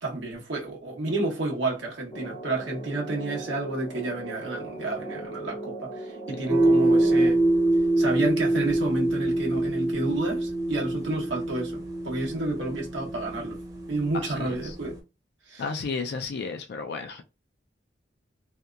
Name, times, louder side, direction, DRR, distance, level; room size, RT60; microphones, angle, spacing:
voice 1, 0.0-7.4 8.0-13.6 13.9-14.9 15.5-15.6, right 2 dB, 90° right, 1.0 m, -30 dB
sound 1, 2.1-7.3, right 2 dB, 25° left, 0.6 m, -38 dB
sound 2, 6.5-15.0, right 2 dB, 20° right, 0.6 m, -25 dB
voice 2, 14.1-14.7 15.6-17.2, left 4 dB, 65° left, 0.4 m, -33 dB
2.7 x 2.3 x 2.3 m
head